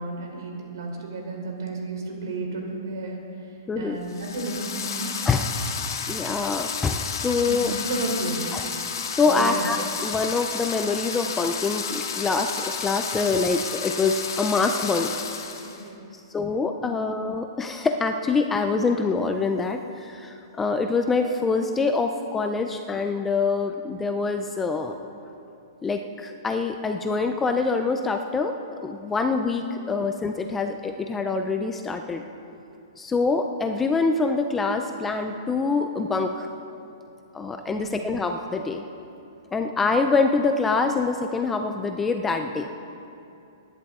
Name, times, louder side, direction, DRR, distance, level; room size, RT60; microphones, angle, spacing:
voice 1, 0.0-5.1 7.4-8.4 9.2-9.7 13.2-13.4 15.6-16.0 16.8-17.0 29.8-29.9 37.7-38.0, right 2 dB, 60° right, 0 dB, 3.3 m, -33 dB
voice 2, 3.7-4.0 5.3-5.4 6.1-7.7 8.5-8.6 9.1-9.8 10.0-15.2 16.3-25.0 25.8-32.2 33.0-36.5 37.3-38.8 39.5-42.7, left 4 dB, 5° left, 5 dB, 0.3 m, -25 dB
sound 1, 4.1-15.8, left 6 dB, 75° left, 1.6 m, -32 dB
22.5 x 11.0 x 3.6 m, 2.7 s
hypercardioid pair, 180°, 2 cm